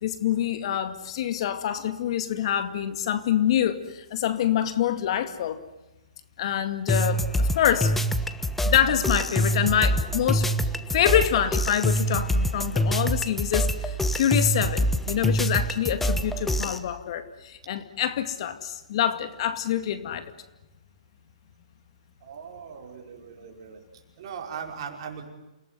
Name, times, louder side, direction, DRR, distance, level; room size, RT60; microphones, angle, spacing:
voice 1, 0.0-5.6 6.4-8.0 8.6-10.5 10.9-20.3, left 10 dB, 50° left, 10 dB, 2.2 m, -26 dB
sound 1, 6.9-16.8, equal, 5° left, 1.3 m, -25 dB
voice 2, 22.2-23.8 24.2-25.3, right 7 dB, 45° right, 2 dB, 5.3 m, -39 dB
28.5 x 18.0 x 9.6 m, 0.98 s
hypercardioid pair, 140°, 4 cm